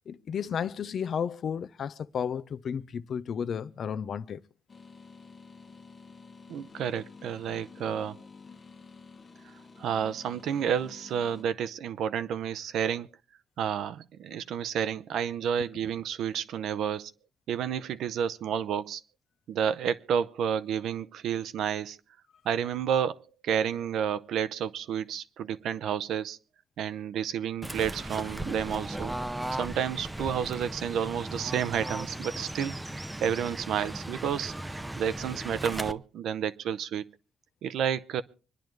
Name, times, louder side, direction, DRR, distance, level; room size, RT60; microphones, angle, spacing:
voice 1, 0.1-4.4, left 7 dB, 55° left, 0.6 m, -33 dB
sound 1, 4.7-11.4, left 4 dB, 40° left, 1.0 m, -50 dB
voice 2, 6.5-8.2 9.8-13.1 13.6-17.1 17.5-19.0 19.5-22.0 22.4-26.4 26.8-29.1 29.5-32.8 33.2-37.1 37.6-38.2, right 8 dB, 80° right, 0.7 m, -30 dB
Fowl / Bird, 27.6-35.9, right 1 dB, 10° right, 0.6 m, -37 dB
25.5 x 10.5 x 3.2 m
cardioid pair, 100°, 0 cm